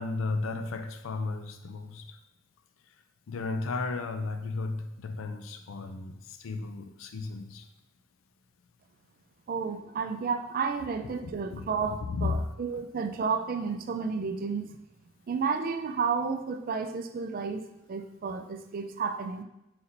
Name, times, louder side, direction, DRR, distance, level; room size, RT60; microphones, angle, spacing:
voice 1, 0.0-2.0 3.3-7.6 11.2-12.4, left 3 dB, 85° left, 8 dB, 0.4 m, -34 dB
voice 2, 9.5-14.7 15.3-17.6 17.9-19.4, right 5 dB, 45° right, 8 dB, 0.3 m, -31 dB
4.2 x 4.1 x 2.6 m, 0.87 s
head